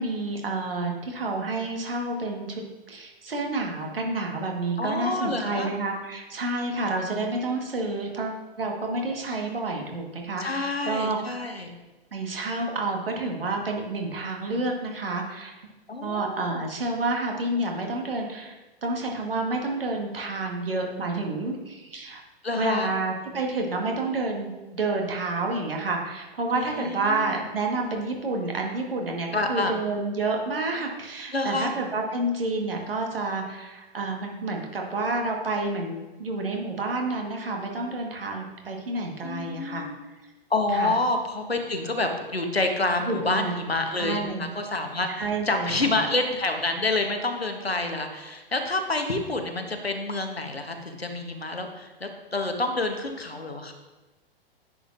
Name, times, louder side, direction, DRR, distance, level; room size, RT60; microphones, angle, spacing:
voice 1, 0.0-2.6 2.9-11.5 12.1-15.5 16.0-22.2 22.5-39.9 40.7-40.9 43.0-43.6 44.0-44.5 45.1-45.9, right 2 dB, 70° right, 1 dB, 1.6 m, -29 dB
voice 2, 4.8-5.7 10.4-11.7 15.9-16.6 22.4-22.9 26.5-27.4 29.3-29.7 31.3-31.7 39.2-40.0 40.5-53.7, left 2 dB, 85° left, 5 dB, 1.0 m, -28 dB
9.8 x 6.4 x 2.5 m, 1.1 s
figure-of-eight pair, 110°, 30 cm